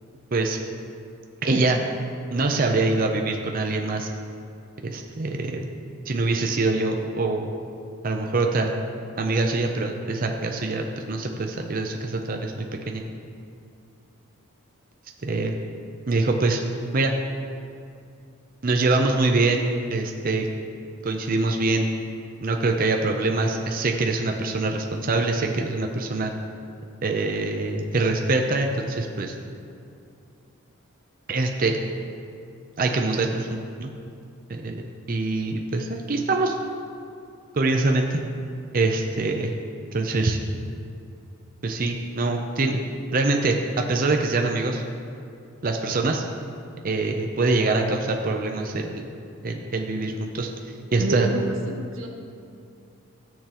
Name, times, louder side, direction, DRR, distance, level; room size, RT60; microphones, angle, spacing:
voice 1, 1.4-1.8 2.3-4.1 4.8-5.6 6.1-7.5 8.0-8.7 9.2-13.0 15.2-15.6 16.1-16.6 16.9-17.1 18.6-20.5 21.0-21.9 22.4-26.3 27.0-29.3 31.3-31.8 32.8-33.9 34.5-34.8 35.1-36.6 37.5-38.2 38.7-39.6 39.9-40.4 41.6-42.8 43.1-44.8 45.6-46.2 46.8-49.1 49.4-50.5 50.9-51.3, right 3 dB, 40° right, 3 dB, 0.5 m, -24 dB
voice 2, 51.0-51.4 51.9-52.1, right 3 dB, 65° right, 0 dB, 1.4 m, -28 dB
17.0 x 6.8 x 3.0 m, 2.5 s
head